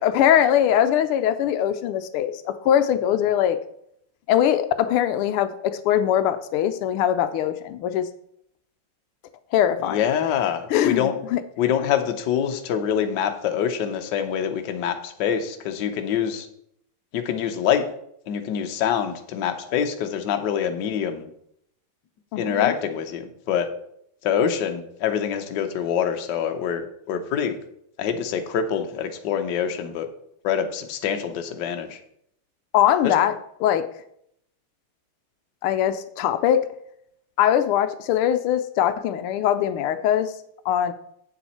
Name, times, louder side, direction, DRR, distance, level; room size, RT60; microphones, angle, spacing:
voice 1, 0.0-3.6 4.3-8.1 9.5-10.0 10.7-11.4 22.3-22.7 32.7-33.3 33.6-33.9 35.6-36.7 37.4-40.3 40.6-40.9, left 10 dB, 85° left, 11 dB, 1.5 m, -21 dB
voice 2, 9.8-11.1 11.6-16.5 17.1-17.8 18.3-21.3 22.4-23.7 24.2-27.6 28.0-30.1 30.4-32.0 33.0-33.1, left 8 dB, 60° left, 6 dB, 1.4 m, -25 dB
8.4 x 7.0 x 4.3 m, 0.72 s
omnidirectional pair, 2.4 m